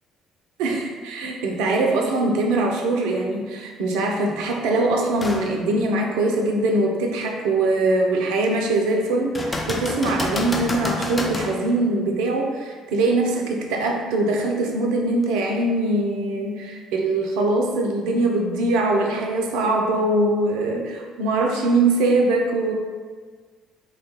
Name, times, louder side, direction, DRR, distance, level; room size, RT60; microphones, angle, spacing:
voice 1, 0.6-22.7, right 2 dB, 65° right, 1 dB, 0.4 m, -22 dB
sound 1, 5.2-5.5 6.1-6.2 9.3-11.6 15.2-15.3, left 2 dB, 20° left, 0.4 m, -28 dB
3.2 x 2.2 x 3.0 m, 1.5 s
figure-of-eight pair, 50°, 0 cm